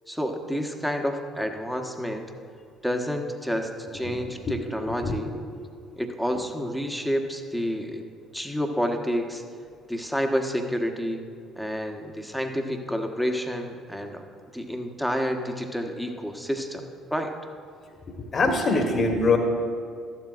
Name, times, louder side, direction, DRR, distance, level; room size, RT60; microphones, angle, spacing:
voice 1, 0.1-2.3 2.8-5.3 6.0-8.0 8.3-9.4 9.9-11.2 11.6-14.2 14.5-17.3, equal, ahead, 4 dB, 1.2 m, -29 dB
voice 2, 4.9-5.2 18.2-19.4, left 3 dB, 45° left, 2 dB, 1.4 m, -23 dB
14.5 x 11.5 x 2.5 m, 2.2 s
hypercardioid pair, 50°, 0 cm